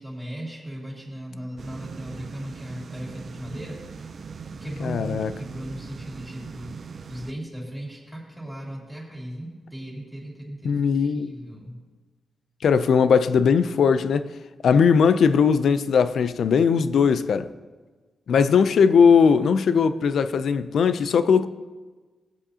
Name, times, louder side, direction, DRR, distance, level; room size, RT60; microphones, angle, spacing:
voice 1, 0.0-3.8 4.6-11.8, right 1 dB, ahead, 2.9 m, -37 dB
sound 1, 1.6-7.3, right 5 dB, 45° right, 0.4 m, -40 dB
voice 2, 4.8-5.3 10.6-11.3 12.6-14.3 14.6-17.5 18.3-21.5, left 6 dB, 65° left, 0.4 m, -19 dB
18.5 x 8.1 x 2.8 m
wide cardioid pair, 130°, 0 cm